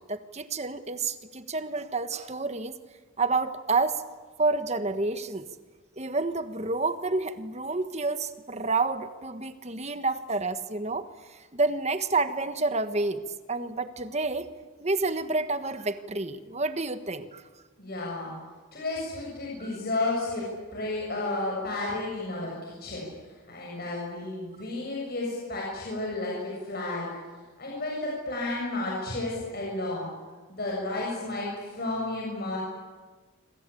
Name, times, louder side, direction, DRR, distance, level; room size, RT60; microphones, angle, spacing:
voice 1, 0.1-2.8 3.2-4.0 4.4-5.5 6.0-13.2 13.5-14.5 14.8-17.4 19.6-19.8, right 3 dB, 30° right, 10 dB, 1.4 m, -29 dB
voice 2, 17.8-18.3 18.7-23.1 23.5-27.1 27.6-30.1 30.5-32.6, left 2 dB, 45° left, -3 dB, 7.6 m, -32 dB
26.5 x 26.0 x 8.6 m, 1.3 s
head